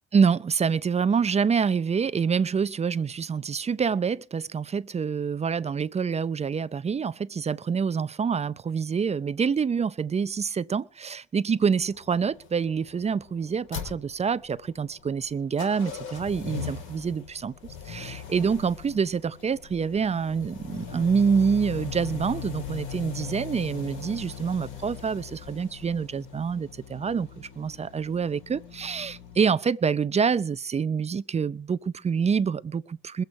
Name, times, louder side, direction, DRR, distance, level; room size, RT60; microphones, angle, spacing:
voice 1, 0.1-17.5 17.8-33.2, right 6 dB, 35° right, 0.6 m, -26 dB
sound 1, 11.6-29.4, left 7 dB, 90° left, 5.4 m, -40 dB
22.5 x 8.0 x 4.7 m
cardioid pair, 90°, 20 cm